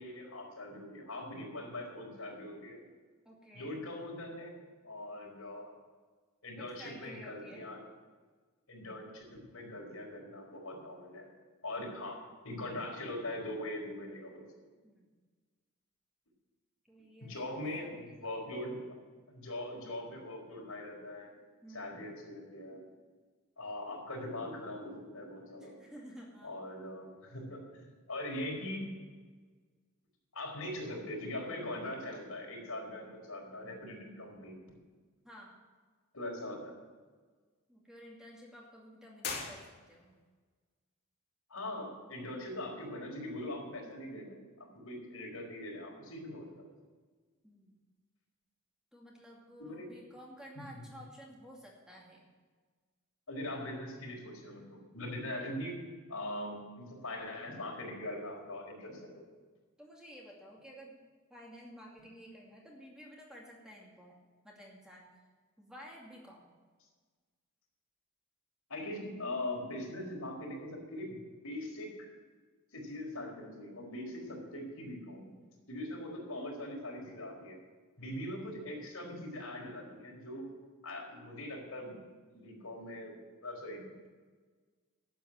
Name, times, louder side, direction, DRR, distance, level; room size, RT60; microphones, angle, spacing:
voice 1, 0.0-2.8 3.5-4.6 4.8-5.7 6.4-7.8 8.7-11.3 11.6-12.2 12.4-14.4 17.2-18.8 19.3-21.4 21.7-22.8 23.6-25.8 26.4-28.9 30.3-34.6 36.1-36.8 41.5-46.7 49.6-49.9 50.5-50.6 53.3-55.7 56.1-59.2 68.7-71.2 71.4-72.1 72.7-75.3 75.7-77.6 78.0-80.4 80.8-81.9 82.3-83.1 83.4-84.1, left 1 dB, 85° left, -1 dB, 4.6 m, -41 dB
voice 2, 3.2-3.8 5.1-5.3 6.6-7.7 14.8-15.1 16.8-18.0 21.6-22.0 25.6-26.6 35.2-35.6 37.7-40.1 47.4-47.8 48.9-52.2 59.8-61.0 61.3-64.2 64.4-65.1 65.6-66.5, equal, 5° right, -3 dB, 2.5 m, -52 dB
sound 1, 39.2-40.3, left 5 dB, 50° left, 2.4 m, -41 dB
12.0 x 8.4 x 9.0 m, 1.4 s
head